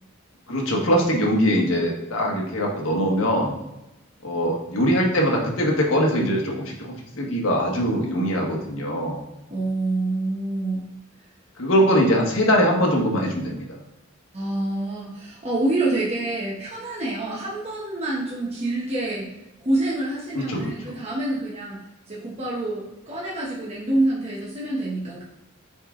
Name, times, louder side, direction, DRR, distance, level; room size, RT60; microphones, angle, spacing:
voice 1, 0.5-3.6 4.2-9.2 11.6-13.7 20.3-20.7, equal, 80° left, -1 dB, 1.3 m, -22 dB
voice 2, 9.5-10.8 14.3-19.3 19.6-21.8 22.1-25.2, right 2 dB, 30° right, -7 dB, 1.1 m, -27 dB
6.8 x 3.7 x 3.8 m, 0.95 s
head